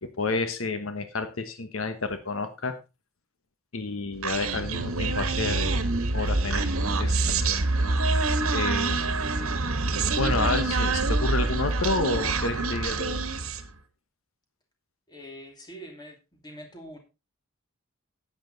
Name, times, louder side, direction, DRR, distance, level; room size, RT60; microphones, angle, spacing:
voice 1, 0.0-2.7 3.7-5.8 6.1-6.7 7.0-7.6 8.5-9.1 10.2-13.3, left 3 dB, 75° left, 9 dB, 1.2 m, -30 dB
Human voice, 4.2-13.7, right 3 dB, 85° right, 1.3 m, -26 dB
voice 2, 15.1-17.0, equal, 20° left, 2 dB, 2.6 m, -44 dB
10.5 x 8.8 x 4.0 m, 0.27 s
head